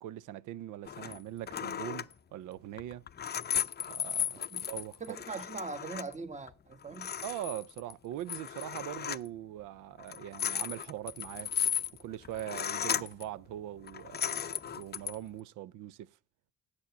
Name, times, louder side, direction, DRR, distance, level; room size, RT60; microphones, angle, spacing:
voice 1, 0.0-3.0 3.9-5.2 7.2-11.5 12.0-16.2, right 12 dB, 90° right, 0.6 m, -42 dB
sound 1, 0.9-1.2 1.5-2.1 2.8-6.1 6.5-6.6 6.8-7.9 8.3-9.3 10.0-13.2 13.8-15.2, left 9 dB, 35° left, 0.5 m, -35 dB
voice 2, 5.0-7.1, right 4 dB, 25° right, 1.4 m, -41 dB
9.1 x 8.1 x 6.9 m
cardioid pair, 90°, 30 cm